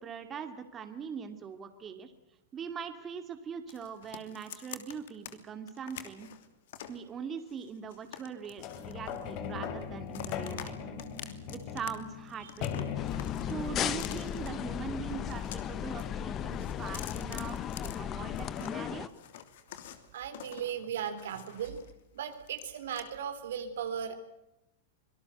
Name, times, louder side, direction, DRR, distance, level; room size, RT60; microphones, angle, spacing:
voice 1, 0.0-2.1 2.5-6.3 6.9-10.9 11.5-12.9 13.4-19.1, right 7 dB, 25° right, 8 dB, 2.4 m, -42 dB
sound 1, 3.7-5.3 5.7-7.0 7.5-9.5 9.8-10.7 11.0-11.9 12.2-14.5 15.1-16.1 16.4-18.7 19.1-21.9 22.2-23.0, left 11 dB, 70° left, 2.9 m, -47 dB
sound 2, 8.6-15.3 16.0-16.1, left 8 dB, 50° left, 3.5 m, -39 dB
sound 3, 12.9-19.1, left 10 dB, 35° left, 1.3 m, -36 dB
voice 2, 20.1-21.8 22.1-24.2, right 8 dB, 80° right, 8 dB, 3.8 m, -37 dB
25.5 x 19.0 x 7.9 m, 0.90 s
hypercardioid pair, 120°, 0 cm